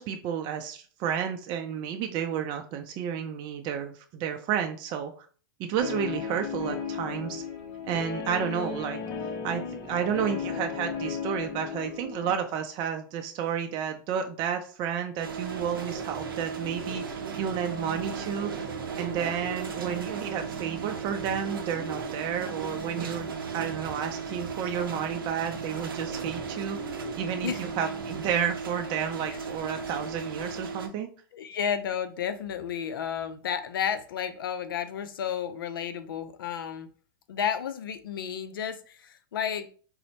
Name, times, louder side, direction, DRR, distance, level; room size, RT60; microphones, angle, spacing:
voice 1, 0.0-5.1 5.6-7.4 7.9-9.0 9.4-18.7 19.0-31.1, right 8 dB, 45° right, 5 dB, 0.4 m, -31 dB
Guitar, 5.8-12.3, left 6 dB, 40° left, 0.6 m, -35 dB
sound 1, 15.2-30.9, right 5 dB, 85° right, 0.6 m, -36 dB
sound 2, 15.6-28.3, right 3 dB, 25° right, 1.0 m, -43 dB
voice 2, 31.3-36.9 37.3-39.7, left 8 dB, 80° left, 10 dB, 0.4 m, -32 dB
4.1 x 2.0 x 2.8 m, 0.41 s
hypercardioid pair, 105°, 11 cm